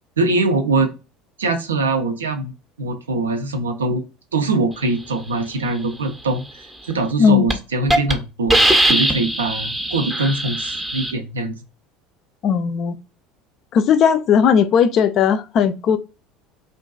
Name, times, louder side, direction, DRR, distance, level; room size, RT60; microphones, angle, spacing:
voice 1, 0.2-1.0 1.4-2.5 2.8-4.0 4.3-8.6 8.9-11.6, right 2 dB, 80° right, 0.4 m, -22 dB
Hiss, 6.9-7.1 7.5-7.6 7.9-8.1 8.5-11.1, right 1 dB, 10° right, 0.6 m, -19 dB
voice 2, 7.2-7.6 12.4-13.0 13.7-16.0, left 7 dB, 45° left, 0.3 m, -16 dB
2.4 x 2.2 x 2.3 m
figure-of-eight pair, 70°, 0 cm